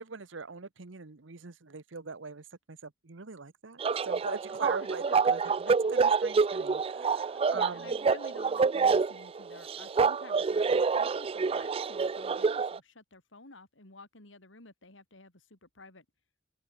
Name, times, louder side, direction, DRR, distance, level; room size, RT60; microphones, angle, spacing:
voice 1, 0.0-7.9, right 4 dB, 80° right, 1.1 m, -42 dB
sound 1, 3.8-12.8, right 5 dB, 30° right, 0.4 m, -27 dB
voice 2, 4.5-5.5 7.5-16.1, left 2 dB, 85° left, 4.1 m, -52 dB
open air
head